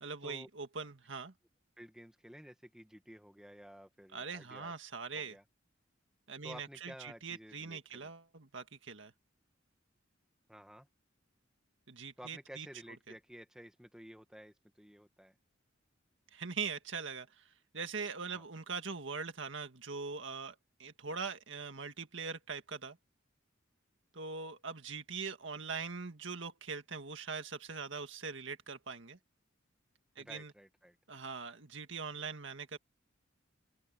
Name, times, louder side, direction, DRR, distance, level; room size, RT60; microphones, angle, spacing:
voice 1, 0.0-1.3 4.1-5.4 6.3-9.1 11.9-12.7 16.3-23.0 24.1-29.2 30.2-30.5 31.1-32.8, right 5 dB, 70° right, 1.9 m, -42 dB
voice 2, 1.8-4.7 5.1-5.4 6.4-8.1 10.5-10.9 12.2-15.4 18.3-18.5 30.2-31.0, equal, 5° right, 1.9 m, -53 dB
open air
head